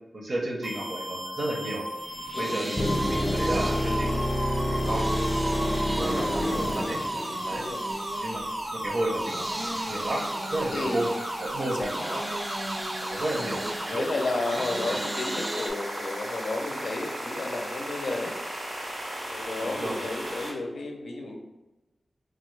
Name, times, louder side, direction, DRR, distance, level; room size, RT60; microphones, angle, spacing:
voice 1, 0.1-1.9 2.3-4.2 4.6-5.4 6.0-7.0 7.4-7.6 8.2-8.4 8.7-10.2 10.5-11.1 11.4-12.4 13.1-14.1 14.7-15.0 19.6-20.1, right 1 dB, 70° right, -1 dB, 0.7 m, -32 dB
sound 1, 0.6-20.5, equal, 85° right, 1.2 m, -34 dB
sound 2, 2.0-15.7, right 1 dB, 30° right, 0.4 m, -37 dB
sound 3, 2.8-7.8 11.8-11.9, equal, 30° left, 0.6 m, -28 dB
voice 2, 7.5-7.8 10.7-11.1 11.6-11.9 13.9-18.3 19.3-21.4, left 2 dB, 90° left, 2 dB, 0.4 m, -32 dB
3.5 x 2.0 x 3.1 m, 1.1 s
wide cardioid pair, 80°, 0 cm